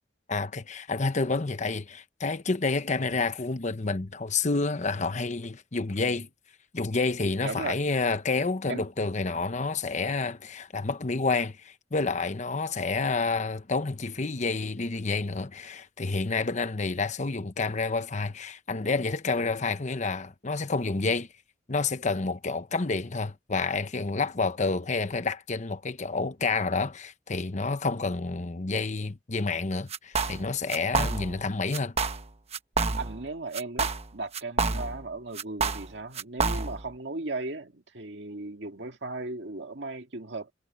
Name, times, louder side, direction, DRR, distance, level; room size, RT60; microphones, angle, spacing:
voice 1, 0.3-6.3 6.7-21.3 21.7-32.0, left 3 dB, 40° left, 1.0 m, -29 dB
voice 2, 7.4-7.8 8.7-8.9 33.0-40.5, right 3 dB, 70° right, 2.1 m, -36 dB
sound 1, 29.9-30.4 30.7-31.4 31.7-32.3 32.5-33.3 33.5-35.1 35.4-36.9, right 4 dB, 35° right, 1.1 m, -28 dB
head